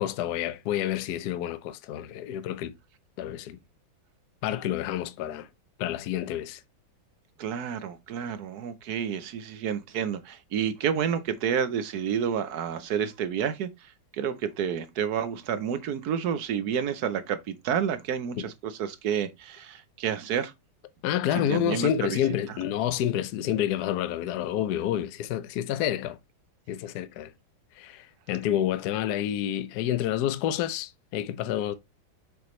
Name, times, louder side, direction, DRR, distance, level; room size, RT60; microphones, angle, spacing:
voice 1, 0.0-2.7 3.2-3.6 4.4-5.5 5.8-6.6 18.4-18.5 21.0-26.2 26.7-27.3 27.8-31.7, left 11 dB, 65° left, 1.0 m, -29 dB
voice 2, 7.4-13.7 14.2-20.5 21.5-22.2, right 8 dB, 65° right, 1.0 m, -29 dB
7.0 x 4.6 x 3.1 m
omnidirectional pair, 2.2 m